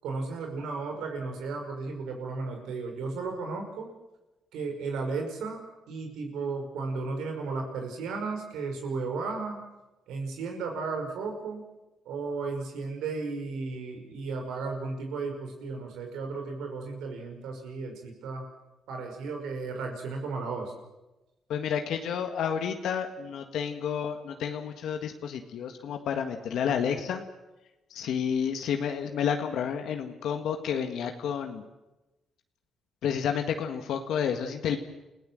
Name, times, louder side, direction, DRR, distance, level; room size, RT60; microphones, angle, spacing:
voice 1, 0.0-3.9 4.5-5.6 5.9-9.6 10.1-11.6 12.1-18.5 18.9-20.7, right 4 dB, 85° right, 3 dB, 5.6 m, -34 dB
voice 2, 21.5-27.2 27.9-31.6 33.0-34.8, left 7 dB, 75° left, 5 dB, 1.7 m, -30 dB
29.0 x 16.0 x 7.8 m, 1.0 s
cardioid pair, 90°, 0 cm